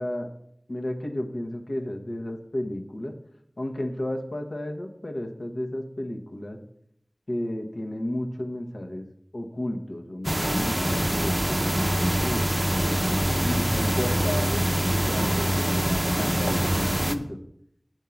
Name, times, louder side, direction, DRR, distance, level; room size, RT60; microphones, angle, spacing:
voice 1, 0.7-3.2 3.6-6.6 7.3-9.1 9.3-12.5 13.3-14.6 15.0-17.4, left 1 dB, 70° left, 3 dB, 1.0 m, -33 dB
sound 1, 10.2-17.1, equal, 20° right, 0.6 m, -24 dB
9.1 x 3.7 x 6.9 m, 0.71 s
wide cardioid pair, 45°, 0 cm